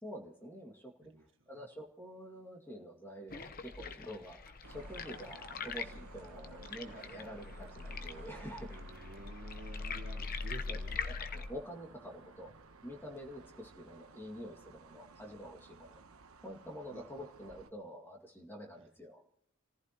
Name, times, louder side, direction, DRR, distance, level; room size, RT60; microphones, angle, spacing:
voice 1, 0.0-0.9 1.5-9.1 10.7-12.5 12.8-16.0 16.4-19.2, equal, 10° left, 0 dB, 2.2 m, -47 dB
sound 1, 3.3-11.5, left 4 dB, 45° left, 0.9 m, -42 dB
sound 2, 4.6-17.7, right 4 dB, 85° right, 1.0 m, -56 dB
voice 2, 8.7-11.0 13.4-13.5 15.9-16.0 16.9-17.1 18.7-18.9, right 2 dB, 60° right, 2 dB, 1.8 m, -52 dB
29.5 x 15.0 x 3.0 m, 0.70 s
head